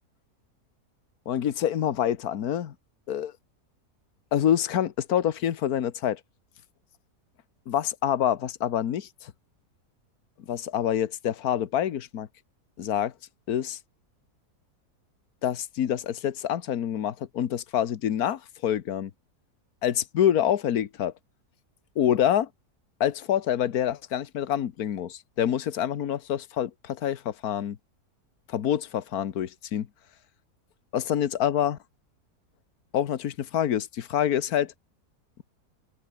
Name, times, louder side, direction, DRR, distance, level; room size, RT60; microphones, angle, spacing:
voice 1, 1.3-2.7 3.1-3.3 4.3-6.2 7.7-9.3 10.5-12.3 12.8-13.1 13.5-13.8 15.4-19.1 19.8-21.1 21.9-22.5 23.0-27.8 28.5-29.9 30.9-31.8 32.9-34.7, left 10 dB, 70° left, 1.6 m, -26 dB
omnidirectional pair, 1.7 m